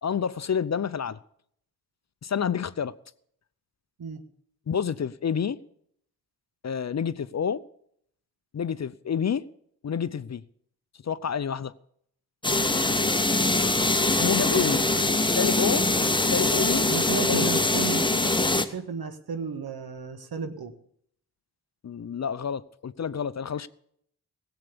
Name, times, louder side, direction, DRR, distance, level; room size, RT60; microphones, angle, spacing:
voice 1, 0.0-1.2 2.2-2.9 4.7-5.6 6.6-7.6 8.5-9.5 9.8-10.4 11.0-11.7 14.2-14.8 15.3-15.9 16.2-16.9 17.3-17.6 21.8-23.7, left 7 dB, 45° left, 0.6 m, -28 dB
sound 1, 12.4-18.6, left 2 dB, 10° left, 1.1 m, -23 dB
voice 2, 14.3-15.1 16.9-18.0 18.5-20.7, right 5 dB, 65° right, 1.6 m, -33 dB
16.5 x 8.2 x 6.8 m
cardioid pair, 50°, 40 cm